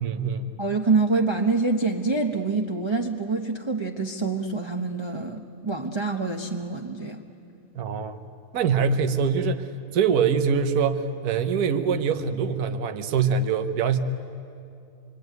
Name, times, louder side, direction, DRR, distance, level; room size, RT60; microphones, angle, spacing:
voice 1, 0.0-0.5 7.7-8.2 8.5-9.7 9.9-14.0, right 6 dB, 70° right, 7 dB, 1.5 m, -24 dB
voice 2, 0.6-7.2, right 3 dB, 20° right, 2 dB, 0.9 m, -26 dB
26.0 x 23.5 x 9.4 m, 2.5 s
omnidirectional pair, 1.7 m